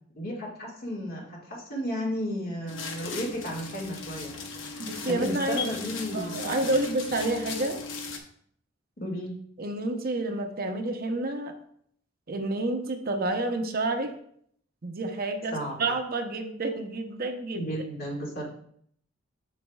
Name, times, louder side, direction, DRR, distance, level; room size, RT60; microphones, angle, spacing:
voice 1, 0.2-4.5 5.1-6.8 9.0-9.3 15.5-15.9 17.5-18.4, equal, 50° left, -2 dB, 1.8 m, -33 dB
sound 1, 2.7-8.2, left 4 dB, 75° left, 0.9 m, -37 dB
voice 2, 4.8-5.6 6.1-7.8 9.6-11.5 12.3-14.1 14.8-17.7, right 2 dB, 50° right, 5 dB, 0.7 m, -29 dB
8.2 x 6.2 x 2.3 m, 0.65 s
head